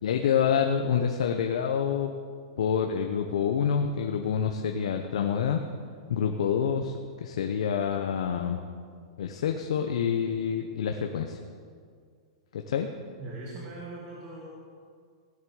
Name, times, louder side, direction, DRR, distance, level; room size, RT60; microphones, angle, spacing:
voice 1, 0.0-2.1 2.6-5.6 6.1-8.6 9.2-11.4 12.5-12.9, left 7 dB, 80° left, 4 dB, 1.1 m, -27 dB
voice 2, 13.2-14.5, right 2 dB, 25° right, -4 dB, 2.2 m, -40 dB
18.0 x 7.8 x 7.9 m, 2.1 s
supercardioid pair, 165°, 3 cm